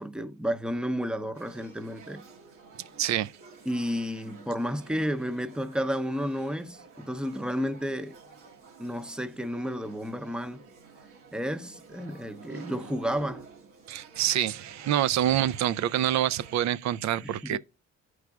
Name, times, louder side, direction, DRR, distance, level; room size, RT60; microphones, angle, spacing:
voice 1, 0.0-2.2 3.7-8.1 8.8-10.6 11.3-13.4 17.2-17.6, equal, 5° right, 0.7 m, -32 dB
sound 1, 1.3-16.6, right 4 dB, 85° right, 1.5 m, -50 dB
voice 2, 3.0-3.3 13.9-17.6, right 11 dB, 65° right, 0.5 m, -26 dB
11.5 x 4.7 x 2.4 m
cardioid pair, 90°, 30 cm